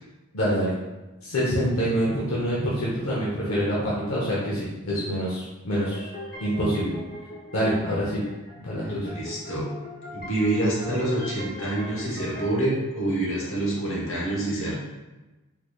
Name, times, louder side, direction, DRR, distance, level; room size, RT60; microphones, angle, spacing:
voice 1, 0.3-0.7 1.2-6.1 6.4-7.0 7.5-8.2 8.5-9.1, equal, 85° left, -7 dB, 0.8 m, -26 dB
sound 1, 5.7-12.5, left 1 dB, 40° left, 0.8 m, -40 dB
voice 2, 9.1-9.7 10.1-14.8, right 1 dB, 65° left, -5 dB, 1.1 m, -27 dB
3.8 x 3.1 x 2.3 m, 1.1 s
head